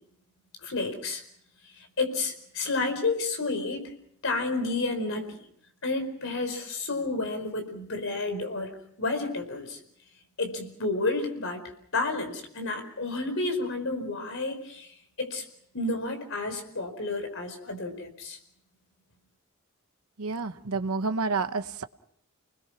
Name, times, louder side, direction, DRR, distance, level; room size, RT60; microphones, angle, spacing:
voice 1, 0.6-1.2 1.8-3.9 4.2-5.4 5.8-8.7 9.0-9.8 10.4-11.6 11.9-15.4 15.7-18.4, left 3 dB, 65° left, 6 dB, 4.7 m, -31 dB
voice 2, 20.2-21.8, right 4 dB, 80° right, 10 dB, 0.9 m, -29 dB
30.0 x 20.5 x 6.0 m, 0.69 s
head